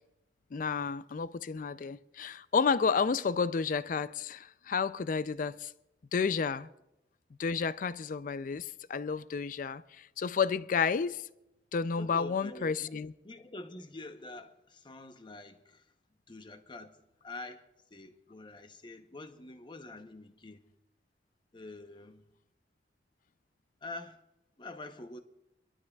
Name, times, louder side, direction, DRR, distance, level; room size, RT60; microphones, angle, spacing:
voice 1, 0.5-5.7 6.1-6.7 7.4-11.2 11.7-13.1, left 5 dB, 50° left, 0.4 m, -31 dB
voice 2, 12.0-12.9 13.2-15.8 16.3-17.0 17.2-17.6 17.9-20.6 21.5-22.2 23.8-24.2 24.6-25.2, left 2 dB, 25° left, 0.8 m, -46 dB
25.0 x 12.5 x 2.3 m
head